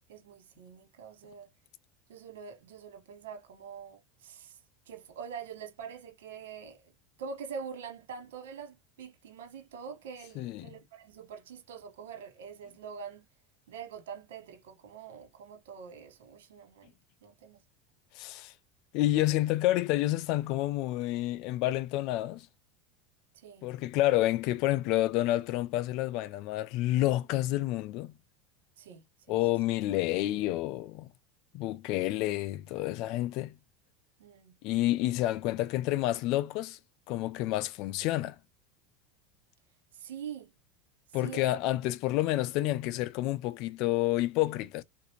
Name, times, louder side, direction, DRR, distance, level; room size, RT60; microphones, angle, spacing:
voice 1, 0.1-1.5 2.1-4.6 4.9-6.9 7.2-13.3 13.7-16.9 17.2-17.6 23.3-23.7 28.8-29.4 34.2-34.6 39.9-40.5 41.2-41.5, right 6 dB, 80° right, 1.2 m, -45 dB
voice 2, 10.4-10.8 18.2-18.5 18.9-22.5 23.6-28.1 29.3-31.1 31.5-33.6 34.6-36.8 37.1-38.4 41.1-44.8, left 15 dB, 60° left, 0.4 m, -29 dB
3.7 x 2.6 x 2.9 m
hypercardioid pair, 100°, 0 cm